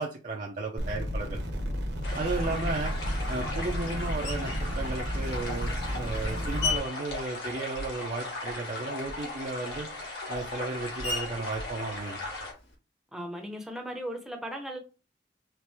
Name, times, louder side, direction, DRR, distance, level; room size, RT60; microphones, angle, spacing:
voice 1, 0.0-1.4 2.1-3.0 3.3-9.9 10.3-12.2, right 3 dB, 45° right, 0.5 m, -34 dB
sound 1, 0.8-6.8, equal, 65° right, 0.9 m, -32 dB
sound 2, 2.0-12.5, left 2 dB, 60° left, 1.5 m, -38 dB
Screech, 4.2-4.7 5.5-8.2 8.4-12.7, left 4 dB, 80° left, 2.1 m, -38 dB
voice 2, 13.1-14.8, equal, ahead, 0.7 m, -37 dB
4.5 x 2.5 x 3.3 m
head